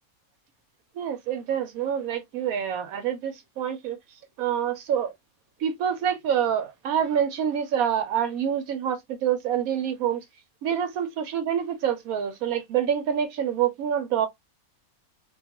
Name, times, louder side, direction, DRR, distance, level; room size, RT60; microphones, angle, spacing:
voice 1, 1.0-4.0 4.4-5.1 5.6-10.2 10.6-14.3, right 9 dB, 75° right, 1.0 m, -26 dB
2.4 x 2.3 x 2.8 m
omnidirectional pair, 1.6 m